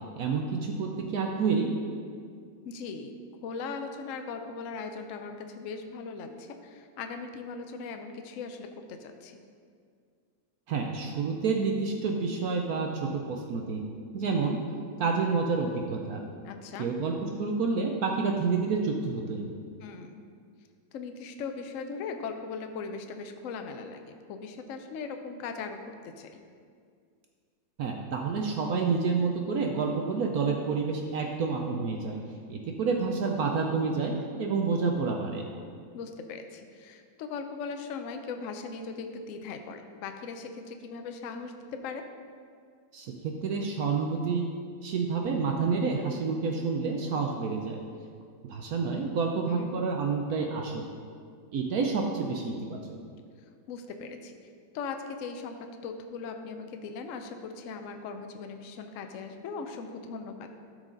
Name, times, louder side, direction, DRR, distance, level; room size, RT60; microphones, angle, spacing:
voice 1, 0.2-1.7 10.7-13.8 14.1-14.6 15.0-16.3 16.8-19.5 27.8-32.2 32.5-35.5 42.9-44.5 44.8-47.8 48.5-50.9 51.5-53.0, right 4 dB, 65° right, 2 dB, 0.9 m, -29 dB
voice 2, 2.6-3.1 3.4-9.4 16.4-16.9 19.8-20.2 20.9-26.3 35.9-42.0 49.5-49.8 53.7-54.4 54.7-60.5, left 5 dB, 80° left, 6 dB, 0.7 m, -39 dB
13.0 x 4.9 x 3.8 m, 2.2 s
omnidirectional pair, 2.1 m